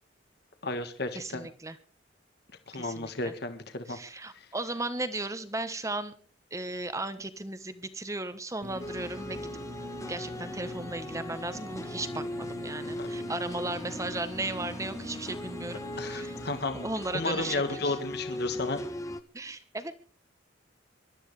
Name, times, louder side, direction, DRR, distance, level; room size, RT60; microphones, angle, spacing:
voice 1, 0.6-1.5 2.7-4.0 4.3-4.5 13.0-13.1 16.0-16.9 17.1-18.8, left 2 dB, 55° left, 7 dB, 1.6 m, -33 dB
voice 2, 1.1-1.8 2.7-3.3 3.9-6.1 6.5-9.5 10.1-16.3 16.7-18.0 19.3-19.9, right 2 dB, 15° right, 12 dB, 1.1 m, -36 dB
sound 1, 8.6-16.6, right 1 dB, 45° right, 1.4 m, -44 dB
sound 2, 8.8-19.2, left 1 dB, 15° left, 1.1 m, -39 dB
25.0 x 12.5 x 3.3 m, 0.37 s
head